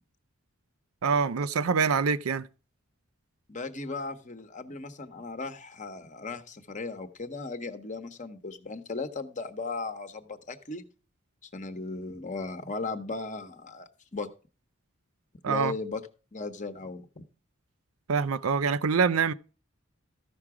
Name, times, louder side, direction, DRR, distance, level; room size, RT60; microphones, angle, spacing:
voice 1, 1.0-2.5 15.4-15.7 18.1-19.3, right 5 dB, 85° right, 0.5 m, -25 dB
voice 2, 3.5-10.9 11.5-14.3 15.5-16.0 16.3-17.2, left 3 dB, 35° left, 1.0 m, -37 dB
14.0 x 6.0 x 4.8 m
head